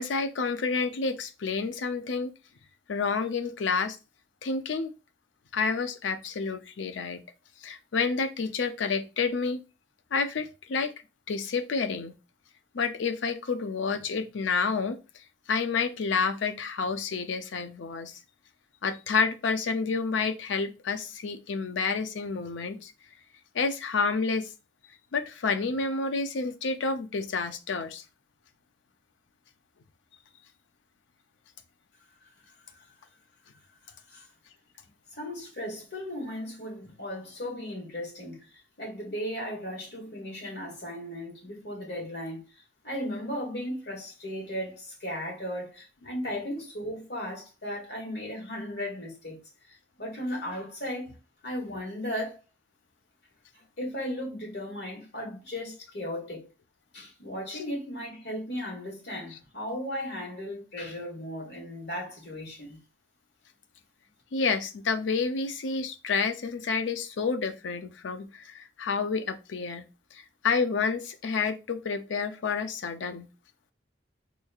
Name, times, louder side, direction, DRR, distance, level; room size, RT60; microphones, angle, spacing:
voice 1, 0.0-2.3 2.9-4.0 4.4-4.9 5.5-7.2 7.6-9.6 10.1-10.9 11.3-12.2 12.7-15.0 15.5-18.2 18.8-22.9 23.5-24.5 25.1-28.0 64.3-69.8 70.1-73.3, left 4 dB, 85° left, 0.5 m, -29 dB
voice 2, 35.1-38.4 38.8-42.4 42.8-49.4 50.0-51.1 51.4-52.4 53.8-56.4 56.9-62.8, equal, 65° left, 1.8 m, -36 dB
4.4 x 3.1 x 2.3 m
head